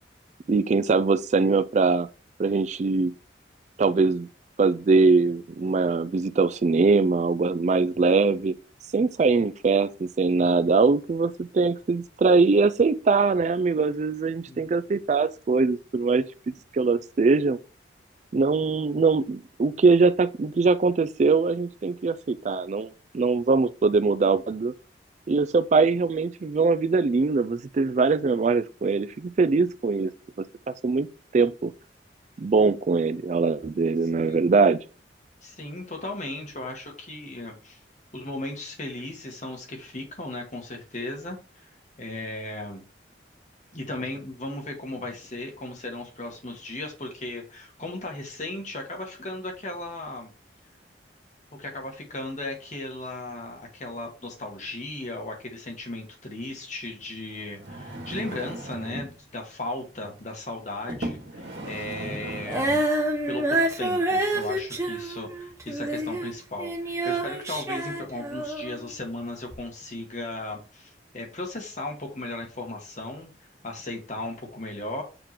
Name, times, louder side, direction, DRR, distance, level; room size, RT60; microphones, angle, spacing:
voice 1, 0.5-2.1 2.4-3.1 3.8-4.3 4.6-8.5 8.9-17.6 18.3-24.7 25.3-30.1 30.8-31.1 31.3-31.7 32.4-34.8, right 4 dB, 40° right, 0.3 m, -22 dB
voice 2, 35.4-37.8 38.1-41.4 42.0-42.8 43.7-50.3 51.6-62.9 63.3-73.3 73.6-75.0, left 2 dB, 40° left, 1.7 m, -36 dB
sound 1, 57.5-59.2 60.0-60.2 60.9-62.9 63.5-63.6, right 1 dB, 85° right, 1.9 m, -37 dB
Female singing, 62.4-68.8 69.5-69.6, right 1 dB, 15° right, 1.2 m, -27 dB
6.9 x 3.7 x 4.4 m
head